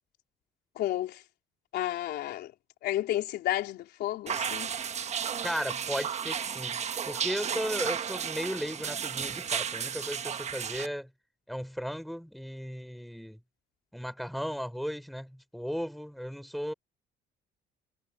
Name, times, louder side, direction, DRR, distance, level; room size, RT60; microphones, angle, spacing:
voice 1, 0.8-1.2 1.7-2.5 2.8-4.7, left 13 dB, 75° left, 3.8 m, -31 dB
sound 1, 4.3-10.9, right 7 dB, 40° right, 1.3 m, -33 dB
voice 2, 5.4-11.1 11.5-13.4 13.9-16.7, equal, ahead, 4.9 m, -36 dB
cardioid pair, 110°, 17 cm